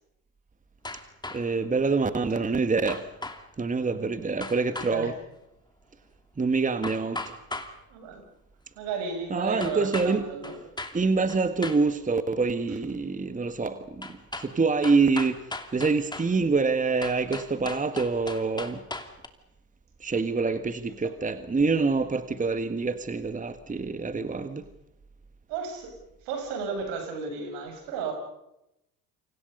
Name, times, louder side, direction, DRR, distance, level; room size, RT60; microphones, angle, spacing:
sound 1, 0.8-1.6 2.9-3.5 4.4-4.9 6.8-7.7 9.6-10.1 10.4-11.0 11.3-11.8 14.0-14.5 14.8-16.3 17.0-19.3, left 2 dB, 10° left, 2.8 m, -37 dB
voice 1, 1.3-3.1 3.6-5.1 6.4-7.2 9.3-10.2 10.9-15.5 15.7-18.8 20.0-24.6, right 4 dB, 15° right, 1.6 m, -26 dB
voice 2, 7.9-8.2 8.8-10.6 25.5-25.9 26.3-28.1, right 5 dB, 70° right, 7.3 m, -33 dB
28.5 x 25.5 x 5.4 m
hypercardioid pair, 70°, 44 cm